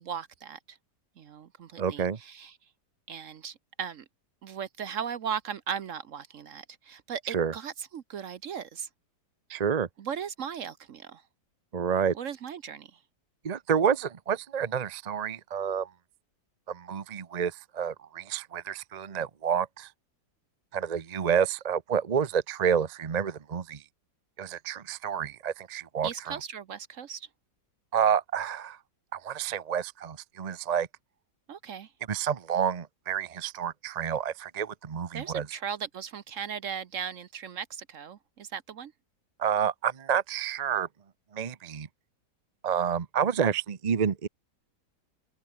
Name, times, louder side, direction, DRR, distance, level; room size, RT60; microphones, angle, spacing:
voice 1, 0.1-0.8 1.2-2.5 3.1-4.0 4.4-8.9 10.0-11.2 12.1-13.0 26.0-27.3 31.5-31.9 35.1-38.9, right 7 dB, 55° right, 1.0 m, -37 dB
voice 2, 1.8-2.2 7.3-7.5 9.5-9.9 11.7-12.1 13.4-15.9 16.7-19.9 20.7-23.8 24.4-26.4 27.9-28.8 29.1-30.9 32.1-35.5 39.4-40.9 41.3-41.9 42.6-44.3, right 7 dB, 35° right, 0.6 m, -29 dB
open air
omnidirectional pair, 1.8 m